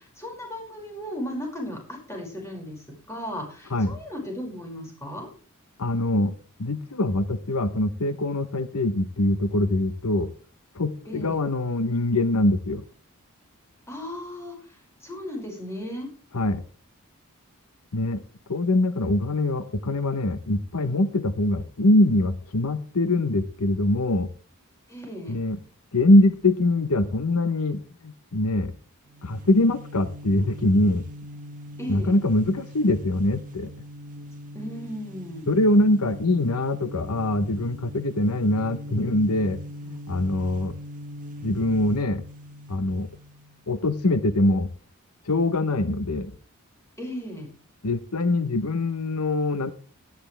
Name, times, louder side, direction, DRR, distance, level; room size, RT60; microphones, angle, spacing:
voice 1, 0.0-5.3 11.1-11.4 13.9-16.1 24.9-25.4 31.8-32.2 34.5-35.5 47.0-47.5, equal, 10° left, 1 dB, 5.5 m, -36 dB
voice 2, 5.8-6.3 6.6-10.3 10.8-12.8 16.3-16.6 17.9-18.2 18.5-24.3 25.3-25.6 25.9-28.7 29.2-31.0 31.9-33.7 35.5-39.6 39.9-40.7 41.4-42.2 42.7-43.1 43.7-44.7 45.3-46.3 47.8-49.7, left 1 dB, 80° left, 12 dB, 0.9 m, -23 dB
sound 1, 29.1-43.6, left 1 dB, 35° right, 1.0 m, -41 dB
17.5 x 11.5 x 3.4 m, 0.38 s
head